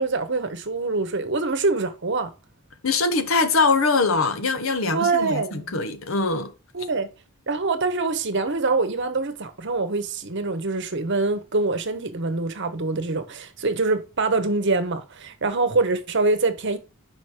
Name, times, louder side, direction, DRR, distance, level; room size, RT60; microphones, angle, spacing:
voice 1, 0.0-2.3 4.9-5.8 6.7-7.1 7.5-16.8, right 3 dB, 55° right, 1.0 m, -24 dB
voice 2, 2.8-6.5, left 3 dB, 60° left, 1.0 m, -22 dB
5.9 x 5.2 x 4.9 m
head